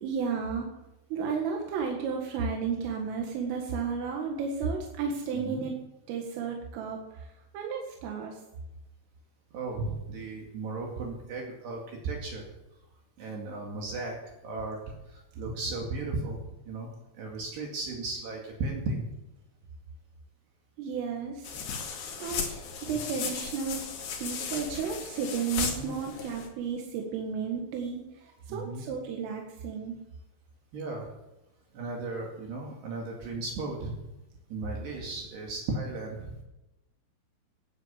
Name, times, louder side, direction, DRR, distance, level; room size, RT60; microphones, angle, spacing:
voice 1, 0.0-0.7 1.1-5.8 6.1-7.3 7.5-8.4 20.8-21.5 22.2-23.9 24.2-28.0 28.5-30.0, right 6 dB, 90° right, 1 dB, 4.4 m, -33 dB
voice 2, 9.5-12.4 13.2-16.4 16.7-16.9 17.2-19.0 25.8-25.9 28.5-28.8 30.7-31.1 31.7-34.0 34.5-36.4, right 3 dB, 60° right, -1 dB, 4.1 m, -35 dB
sound 1, 21.4-26.5, left 6 dB, 60° left, 4.1 m, -36 dB
18.0 x 9.4 x 7.6 m, 0.94 s
omnidirectional pair, 5.6 m